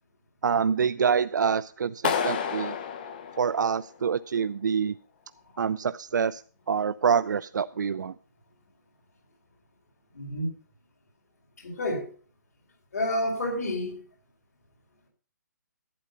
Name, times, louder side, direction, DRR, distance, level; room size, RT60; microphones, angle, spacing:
voice 1, 0.4-2.7 3.4-4.9 5.6-6.4 6.7-8.1, right 6 dB, 75° right, 0.4 m, -26 dB
Clapping, 2.0-4.1, left 7 dB, 30° left, 0.8 m, -30 dB
voice 2, 10.1-10.5 11.6-12.1 12.9-14.0, left 1 dB, 55° left, 4.2 m, -29 dB
11.5 x 8.7 x 5.2 m
hypercardioid pair, 170°, 10 cm